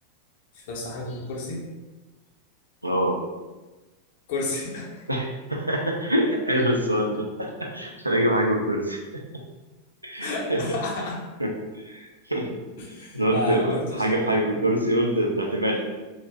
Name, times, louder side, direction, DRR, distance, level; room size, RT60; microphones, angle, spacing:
voice 1, 0.5-1.6 4.3-5.0 10.2-11.2 12.8-14.4, left 2 dB, 50° left, -1 dB, 0.6 m, -31 dB
voice 2, 2.8-3.2 5.1-9.0 10.0-10.6 11.4-12.6 13.1-15.8, right 1 dB, 85° right, 0 dB, 0.4 m, -25 dB
2.4 x 2.1 x 3.3 m, 1.2 s
figure-of-eight pair, 90°, 0 cm